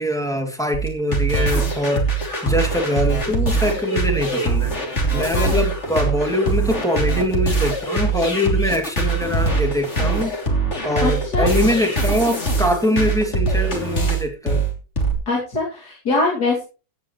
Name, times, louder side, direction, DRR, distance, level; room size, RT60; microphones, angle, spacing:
voice 1, 0.0-10.4 10.8-14.6, left 1 dB, ahead, 4 dB, 2.4 m, -23 dB
sound 1, 0.7-15.1, right 3 dB, 35° left, 3.4 m, -22 dB
voice 2, 11.0-11.5 15.3-16.6, left 3 dB, 50° left, -3 dB, 3.2 m, -22 dB
16.5 x 9.5 x 3.2 m, 0.32 s
omnidirectional pair, 2.2 m